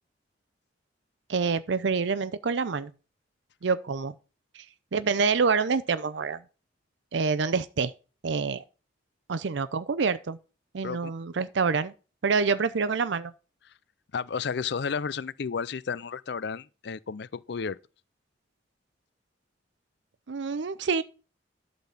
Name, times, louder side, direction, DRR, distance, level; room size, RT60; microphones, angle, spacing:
voice 1, 1.3-2.9 3.6-4.1 4.5-4.6 4.9-6.4 7.1-7.9 8.2-8.6 9.3-10.4 10.7-11.9 12.2-13.3 20.3-21.0, right 5 dB, 70° right, 0.5 m, -27 dB
voice 2, 14.1-17.8, left 6 dB, 60° left, 0.5 m, -32 dB
11.5 x 4.0 x 7.1 m
head